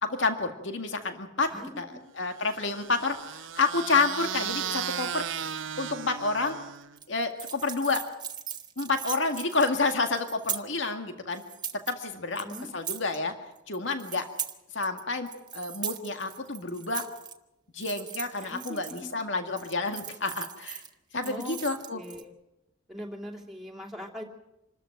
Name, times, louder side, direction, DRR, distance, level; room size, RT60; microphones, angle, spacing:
voice 1, 0.0-1.5 1.8-1.9 2.2-5.3 5.8-6.6 7.1-8.1 8.8-11.4 11.9-12.5 12.7-13.3 13.7-14.3 14.7-17.0 17.7-20.8 21.1-22.0, left 3 dB, 70° left, 6 dB, 2.0 m, -29 dB
voice 2, 1.5-2.0 12.3-12.7 18.4-18.8 21.2-21.6 21.9-22.3 22.9-24.2, equal, ahead, 0 dB, 2.9 m, -41 dB
sound 1, 2.4-7.0, right 8 dB, 80° right, 0.8 m, -35 dB
sound 2, 7.0-10.8 11.3-12.0 12.3-13.2 13.5-15.0 15.3-17.3 17.8-19.2 19.6-20.9 21.2-22.2, right 8 dB, 20° right, 1.2 m, -39 dB
26.5 x 13.5 x 9.0 m, 0.90 s
head